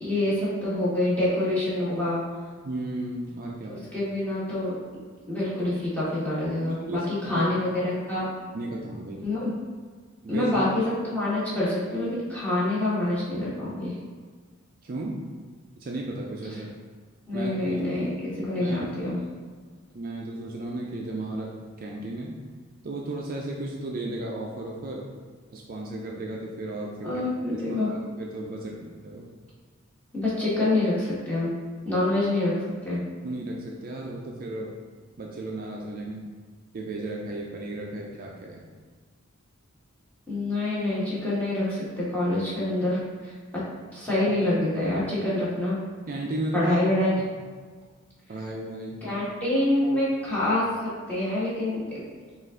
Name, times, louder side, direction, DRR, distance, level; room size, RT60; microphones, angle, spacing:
voice 1, 0.0-2.2 3.7-4.7 5.3-8.3 9.2-9.5 10.3-13.9 17.3-19.2 27.0-27.9 30.1-31.5 31.8-32.5 32.8-33.0 40.3-43.3 43.9-45.7 46.5-47.1 49.0-50.6 51.1-51.8, left 1 dB, 5° left, -10 dB, 1.3 m, -26 dB
voice 2, 2.6-3.8 6.7-7.5 8.5-9.3 10.2-10.5 14.8-15.2 15.8-16.7 17.3-17.8 18.6-18.8 19.9-21.5 21.8-22.4 22.8-25.1 25.5-27.2 27.5-29.3 33.2-34.7 35.2-36.3 36.7-38.7 44.6-44.7 45.3-45.4 46.1-46.8 47.2-47.3 48.3-49.0, right 2 dB, 45° right, -1 dB, 0.4 m, -34 dB
5.2 x 2.5 x 3.7 m, 1.5 s
head